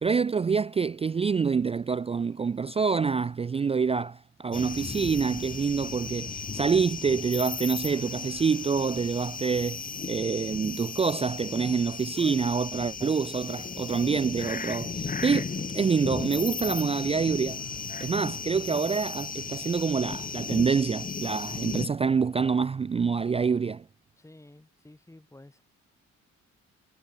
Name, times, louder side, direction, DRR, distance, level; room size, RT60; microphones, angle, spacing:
voice 1, 0.0-9.8 10.1-17.6 18.0-23.8, right 5 dB, 20° right, 0.3 m, -26 dB
sound 1, 4.5-21.9, left 5 dB, 30° left, 1.4 m, -36 dB
sound 2, 7.8-12.1, right 6 dB, 45° right, 5.6 m, -54 dB
voice 2, 24.2-25.6, left 1 dB, 10° left, 2.6 m, -52 dB
cardioid pair, 90°, 30 cm